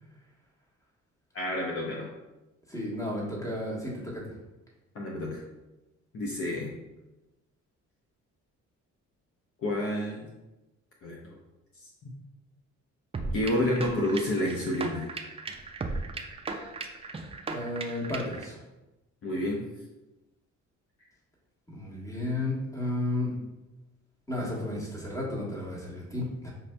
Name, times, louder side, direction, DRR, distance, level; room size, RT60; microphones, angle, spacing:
voice 1, 1.3-2.1 4.9-5.4 6.1-6.7 9.6-10.3 11.0-11.3 11.8-12.1 13.3-15.1 19.2-19.6, left 1 dB, 50° left, -3 dB, 0.7 m, -29 dB
voice 2, 2.7-4.2 17.5-18.6 21.7-23.3 24.3-26.5, left 1 dB, 10° left, -5 dB, 1.3 m, -33 dB
sound 1, 13.1-18.5, right 3 dB, 20° right, 0.3 m, -36 dB
5.4 x 2.6 x 2.2 m, 1.0 s
cardioid pair, 90°, 30 cm